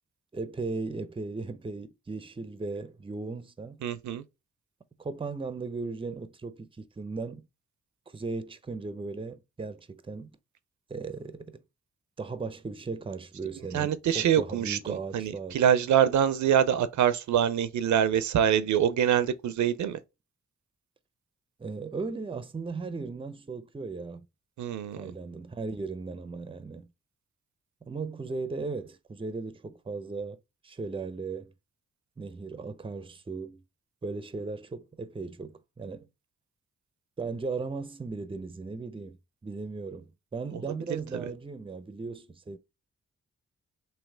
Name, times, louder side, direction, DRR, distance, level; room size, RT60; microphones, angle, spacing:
voice 1, 0.3-3.8 5.0-7.5 8.1-10.4 10.9-11.6 12.2-15.6 21.6-24.3 25.0-26.9 27.8-30.4 30.6-31.5 32.2-33.6 34.0-36.1 37.2-39.2 39.4-42.6, right 4 dB, 15° right, 0.5 m, -37 dB
voice 2, 3.8-4.2 13.7-20.0 24.6-25.1, right 9 dB, 70° right, 0.5 m, -25 dB
3.1 x 2.8 x 3.7 m
supercardioid pair, 45°, 30 cm